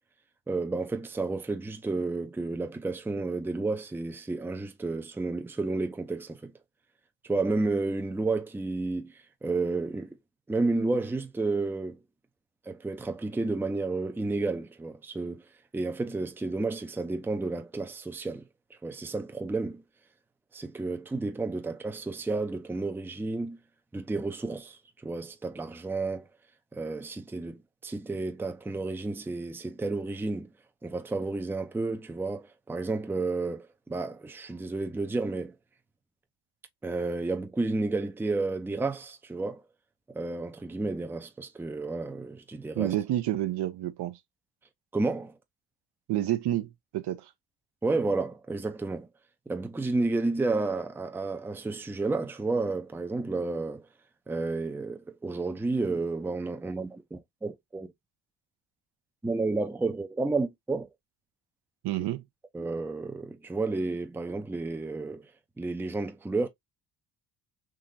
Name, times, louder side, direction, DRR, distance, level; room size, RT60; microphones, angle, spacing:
voice 1, 0.5-6.5 7.2-10.2 10.5-12.0 12.7-15.4 15.7-18.5 18.8-19.8 20.5-23.6 23.9-26.3 26.7-30.5 30.8-35.5 36.8-39.6 40.1-42.9 44.9-45.3 47.8-49.1 49.5-53.8 54.3-57.9 59.2-60.9 62.5-65.3 65.6-66.5, right 3 dB, 5° right, 0.5 m, -31 dB
voice 2, 42.8-44.2 46.1-47.3 61.8-62.2, right 13 dB, 60° right, 0.6 m, -29 dB
3.7 x 2.9 x 2.6 m
cardioid pair, 80°, 45 cm